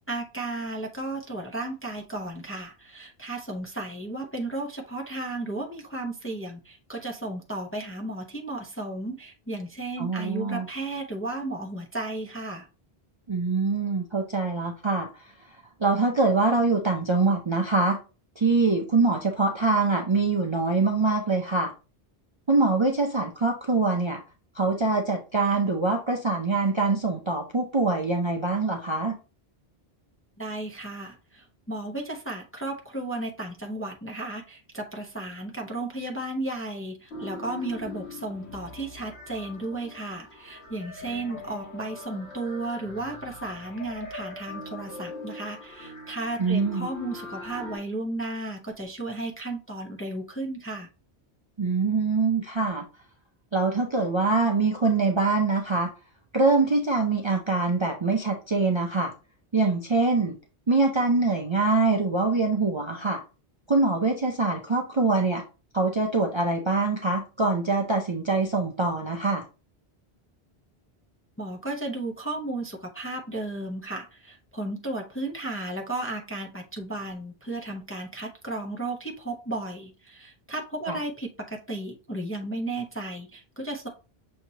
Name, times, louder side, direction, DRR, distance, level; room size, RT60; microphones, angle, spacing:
voice 1, 0.1-12.7 30.4-50.9 71.4-83.9, right 2 dB, 15° left, 1 dB, 0.5 m, -34 dB
voice 2, 10.0-10.7 13.3-15.1 15.8-18.0 18.4-21.7 22.5-24.2 24.5-29.1 46.4-46.9 51.6-52.8 53.5-55.9 56.3-59.1 59.5-60.3 60.7-63.2 63.7-65.4 65.7-69.4 80.9-81.0, right 3 dB, 35° right, 1 dB, 0.5 m, -24 dB
sound 1, 37.1-47.8, left 2 dB, 90° left, 1.8 m, -42 dB
6.4 x 2.8 x 2.8 m, 0.32 s
omnidirectional pair, 1.1 m